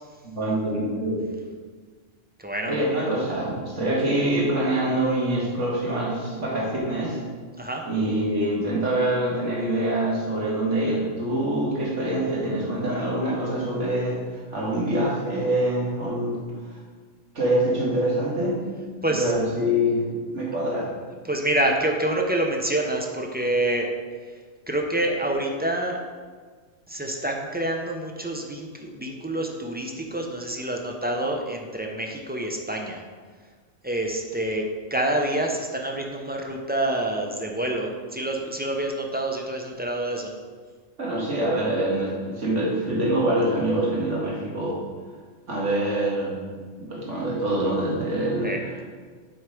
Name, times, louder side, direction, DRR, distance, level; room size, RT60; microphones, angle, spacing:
voice 1, 0.3-1.3 2.7-7.2 7.9-16.4 16.6-16.8 17.3-18.6 19.1-20.0 20.3-20.9 41.0-44.8 45.5-48.7, right 1 dB, 65° right, -4 dB, 2.2 m, -25 dB
voice 2, 2.4-2.8 7.6-7.8 19.0-19.3 21.2-23.9 24.3-24.4 24.7-26.0 26.9-33.0 33.8-34.6 34.9-40.3 48.4-48.6, right 1 dB, 10° right, 1 dB, 0.5 m, -27 dB
7.8 x 4.8 x 5.0 m, 1.5 s
omnidirectional pair, 1.3 m